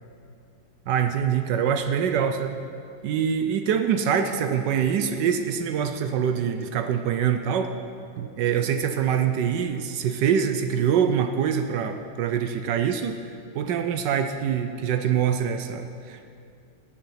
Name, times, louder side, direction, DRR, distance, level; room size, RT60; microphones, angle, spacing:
voice 1, 0.9-2.6 3.0-7.7 8.2-13.2 13.5-16.2, right 8 dB, 70° right, 7 dB, 1.0 m, -24 dB
18.5 x 6.7 x 5.8 m, 2.5 s
omnidirectional pair, 2.4 m